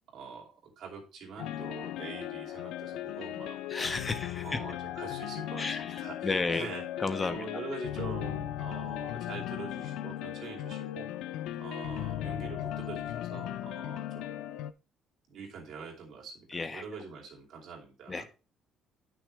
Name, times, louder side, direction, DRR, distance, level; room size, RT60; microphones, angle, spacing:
voice 1, 0.1-4.0 4.4-6.8 7.3-11.1 11.6-14.4 15.3-18.3, right 5 dB, 55° right, -1 dB, 2.9 m, -44 dB
sound 1, 1.4-14.7, left 12 dB, 80° left, 0.4 m, -37 dB
voice 2, 3.7-4.6 5.6-6.7 7.0-7.4 16.5-16.8 18.1-18.2, left 3 dB, 20° left, 11 dB, 0.4 m, -32 dB
9.7 x 6.1 x 3.3 m, 0.32 s
cardioid pair, 175°, 0 cm